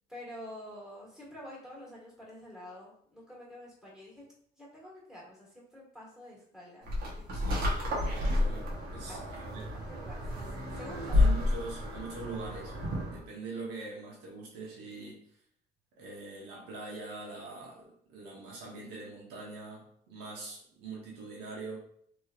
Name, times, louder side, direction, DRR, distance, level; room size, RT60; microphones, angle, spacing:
voice 1, 0.1-6.9 7.2-8.0 9.1-9.2 9.9-11.3, equal, 5° right, -5 dB, 1.5 m, -48 dB
sound 1, 6.9-13.2, left 2 dB, 65° right, 1.0 m, -30 dB
voice 2, 7.3-9.7 11.1-12.7 13.0-15.2 16.0-21.8, right 3 dB, 85° right, -3 dB, 1.0 m, -43 dB
3.1 x 3.0 x 2.4 m, 0.64 s
cardioid pair, 110°, 17 cm